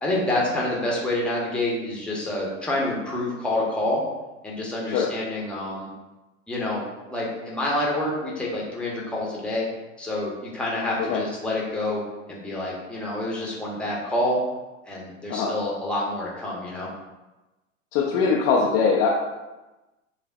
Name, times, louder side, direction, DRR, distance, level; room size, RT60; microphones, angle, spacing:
voice 1, 0.0-4.0 4.4-5.9 6.5-6.8 7.1-9.7 10.0-12.0 12.3-14.4 14.9-16.9, left 1 dB, 5° left, -4 dB, 0.9 m, -27 dB
voice 2, 17.9-19.1, left 5 dB, 30° left, -3 dB, 0.5 m, -22 dB
6.9 x 2.4 x 2.3 m, 1.1 s
figure-of-eight pair, 100°, 40 cm